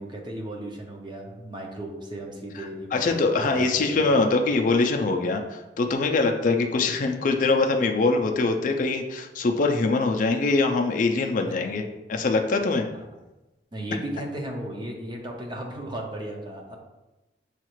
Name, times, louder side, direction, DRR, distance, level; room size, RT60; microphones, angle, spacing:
voice 1, 0.0-4.2 11.4-11.5 12.9-13.0 13.7-16.8, right 1 dB, 25° right, 0 dB, 0.6 m, -35 dB
voice 2, 2.6-11.8 12.1-12.8, left 3 dB, 45° left, 4 dB, 0.4 m, -23 dB
6.3 x 2.4 x 3.0 m, 1.0 s
head